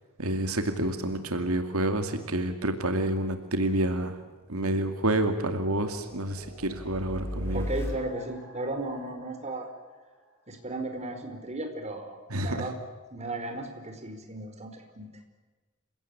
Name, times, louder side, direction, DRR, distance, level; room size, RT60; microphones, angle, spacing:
voice 1, 0.2-4.2 4.5-7.7 12.3-12.7, right 1 dB, 90° right, 7 dB, 2.4 m, -28 dB
sound 1, 4.2-10.7, equal, 10° left, 7.2 m, -40 dB
voice 2, 7.5-9.7 10.5-12.1 12.4-12.7 13.1-15.1, right 2 dB, 30° right, 5 dB, 4.6 m, -35 dB
28.5 x 17.0 x 8.6 m, 1.3 s
head